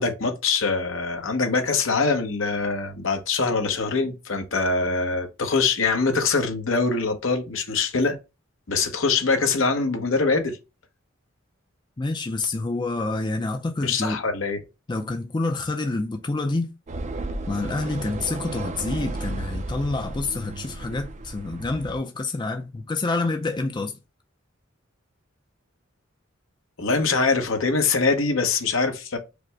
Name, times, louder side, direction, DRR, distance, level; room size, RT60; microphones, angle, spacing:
voice 1, 0.0-8.2 8.7-10.6 13.8-14.6 26.8-29.2, left 4 dB, 75° left, 0.9 m, -23 dB
voice 2, 12.0-14.2 14.9-16.7 17.5-24.0, left 3 dB, 25° left, 0.4 m, -27 dB
sound 1, 16.9-22.0, right 2 dB, 35° right, 0.5 m, -33 dB
5.0 x 2.1 x 4.6 m
head